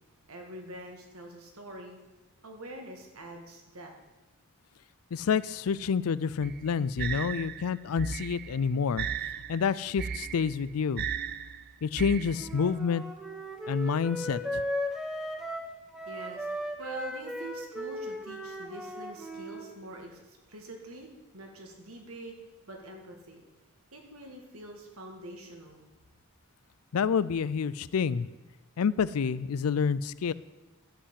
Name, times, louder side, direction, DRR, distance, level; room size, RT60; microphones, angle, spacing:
voice 1, 0.3-2.0 2.4-3.9 16.1-22.3 22.7-23.4 23.9-25.8, right 1 dB, 75° right, 2 dB, 2.1 m, -45 dB
voice 2, 5.1-9.1 9.5-11.1 11.8-13.0 13.7-14.6 26.9-28.3 28.8-30.3, left 6 dB, 80° left, 18 dB, 0.4 m, -28 dB
sound 1, 6.4-12.7, right 7 dB, 45° right, 0.4 m, -36 dB
Wind instrument woodwind instrument, 12.3-19.6, equal, ahead, 1.0 m, -36 dB
12.5 x 5.7 x 8.2 m, 1.1 s
head